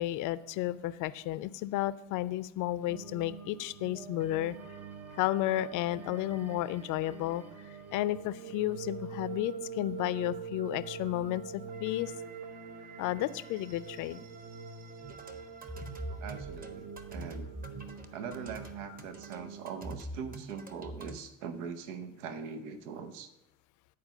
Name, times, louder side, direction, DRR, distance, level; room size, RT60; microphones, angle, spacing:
voice 1, 0.0-4.5 5.2-7.4 7.9-12.1 13.0-14.2, left 14 dB, 50° left, 16 dB, 0.6 m, -32 dB
sound 1, 2.9-19.9, right 6 dB, 40° right, 1.0 m, -45 dB
sound 2, 15.0-21.2, right 2 dB, 20° right, 1.2 m, -43 dB
voice 2, 16.2-17.5 18.1-23.3, right 6 dB, 75° right, 10 dB, 0.9 m, -42 dB
9.3 x 4.6 x 7.2 m, 0.91 s
hypercardioid pair, 65°, 39 cm